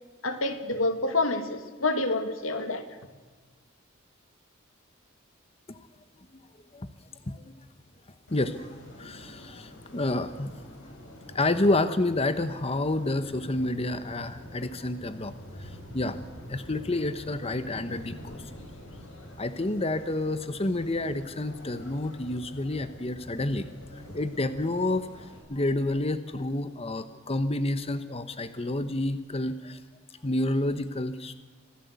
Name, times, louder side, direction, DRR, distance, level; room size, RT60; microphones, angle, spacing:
voice 1, 0.2-2.8, left 2 dB, 85° left, 8 dB, 2.3 m, -28 dB
sound 1, 8.3-25.4, equal, 65° left, 6.1 m, -46 dB
voice 2, 8.3-10.9 11.3-15.3 15.6-16.2 16.5-18.4 19.4-23.7 24.1-25.1 25.5-29.8 30.2-31.3, left 2 dB, 30° left, 11 dB, 1.0 m, -29 dB
26.0 x 16.0 x 8.2 m, 1.4 s
head